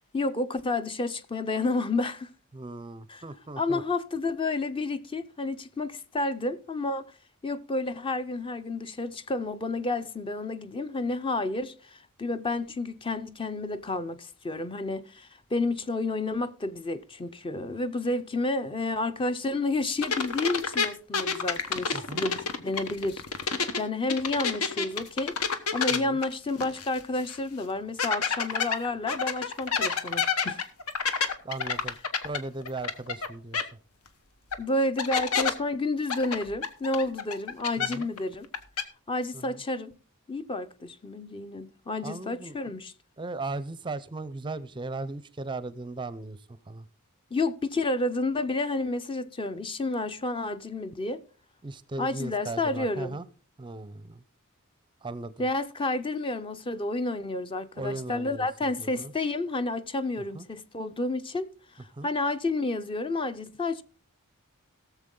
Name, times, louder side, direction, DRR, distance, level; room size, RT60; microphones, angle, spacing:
voice 1, 0.1-2.3 3.1-3.2 3.6-7.0 7.4-30.6 34.6-38.5 39.1-39.9 40.3-42.9 47.3-51.2 52.0-53.2 55.4-61.5 62.0-63.8, left 2 dB, 25° left, 0.6 m, -30 dB
voice 2, 2.5-3.8 21.9-22.2 25.9-26.2 31.4-32.0 32.2-33.6 37.8-38.1 39.3-39.6 42.0-42.6 43.2-46.4 46.7-46.9 51.6-53.3 53.6-54.2 55.0-55.5 57.8-59.1 60.3-60.5 61.9-62.1, right 2 dB, 20° right, 0.5 m, -37 dB
Swiping Glass, 20.0-23.8 24.1-27.0 27.3-27.4 28.0-33.3 33.5-33.6 34.5-34.6 35.0-35.5 36.1-38.2 38.4-38.8, left 5 dB, 75° left, 1.1 m, -28 dB
17.5 x 7.2 x 3.7 m
head